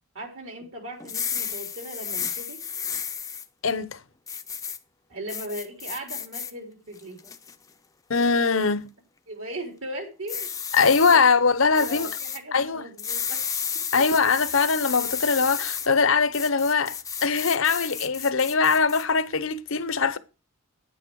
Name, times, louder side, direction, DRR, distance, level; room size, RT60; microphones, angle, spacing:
voice 1, 0.1-2.6 5.1-7.2 9.3-10.5 11.1-11.2 11.7-13.4, right 1 dB, 65° right, 3.9 m, -38 dB
sound 1, 1.0-3.5 4.3-4.8 5.3-6.5 7.0-7.6 8.2-8.5 10.3-11.2 11.8-12.4 13.0-15.9 16.3-19.0, left 7 dB, 15° left, 0.7 m, -32 dB
voice 2, 3.6-4.0 8.1-8.9 10.7-12.1 12.5-12.8 13.9-20.2, left 5 dB, 65° left, 0.9 m, -22 dB
10.0 x 9.4 x 4.8 m
head